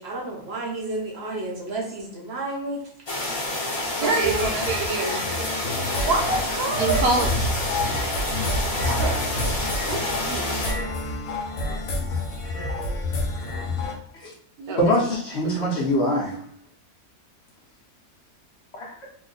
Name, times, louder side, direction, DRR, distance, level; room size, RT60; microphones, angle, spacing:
voice 1, 0.0-2.8 4.0-4.5 6.0-7.0 8.9-9.2 9.9-10.5 14.6-14.9, right 3 dB, 55° right, -1 dB, 0.8 m, -28 dB
sound 1, 3.1-10.7, left 2 dB, 30° left, 0.5 m, -28 dB
voice 2, 4.0-6.1 6.8-7.3 14.7-15.0 15.6-15.7, right 3 dB, 85° right, 2 dB, 1.2 m, -27 dB
sound 2, 4.2-13.9, left 1 dB, 75° left, 1.1 m, -29 dB
voice 3, 14.8-16.4 18.7-19.1, equal, 55° left, -3 dB, 0.9 m, -24 dB
2.9 x 2.1 x 3.9 m, 0.67 s
omnidirectional pair, 1.6 m